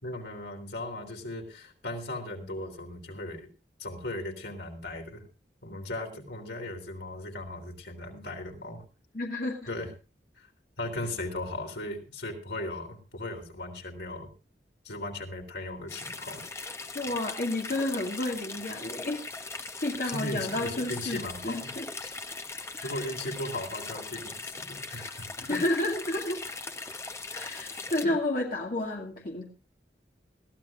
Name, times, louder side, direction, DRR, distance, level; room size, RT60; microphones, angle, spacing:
voice 1, 0.0-3.5 3.8-5.2 5.6-8.8 9.7-9.9 10.4-10.5 10.8-14.3 14.8-16.4 20.0-21.7 22.0-22.2 22.6-25.6 28.0-28.1, left 1 dB, 85° left, 3 dB, 3.5 m, -37 dB
voice 2, 9.1-9.7 16.9-19.2 19.5-21.9 22.8-22.9 25.4-26.4 27.3-29.4, left 1 dB, 50° left, 0 dB, 2.2 m, -31 dB
sound 1, 15.9-28.0, left 3 dB, 15° left, 0.9 m, -40 dB
21.5 x 14.5 x 2.5 m, 0.32 s
head